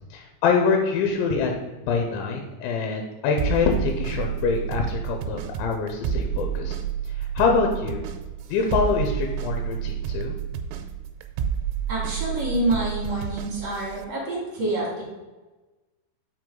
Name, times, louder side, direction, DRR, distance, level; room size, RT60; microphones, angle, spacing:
voice 1, 0.1-1.5 1.8-6.7 7.2-8.0 8.5-10.4, left 5 dB, 80° left, 3 dB, 2.8 m, -25 dB
sound 1, 3.4-14.1, right 9 dB, 85° right, 3.1 m, -30 dB
voice 2, 11.9-15.0, right 2 dB, 45° right, -6 dB, 2.4 m, -27 dB
7.7 x 5.0 x 3.8 m, 1.2 s
omnidirectional pair, 5.7 m